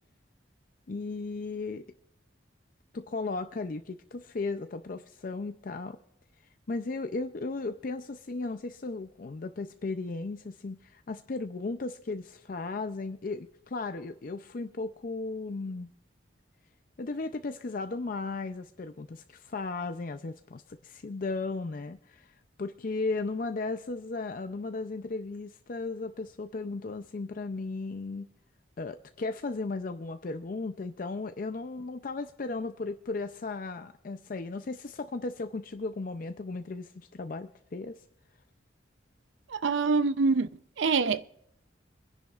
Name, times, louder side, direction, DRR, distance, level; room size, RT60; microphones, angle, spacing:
voice 1, 0.9-1.8 2.9-6.0 6.7-15.9 17.0-28.3 28.8-38.0, left 3 dB, 45° left, 0.5 m, -35 dB
voice 2, 39.5-40.5 40.8-41.2, right 4 dB, 80° right, 0.5 m, -25 dB
25.0 x 10.5 x 2.4 m
head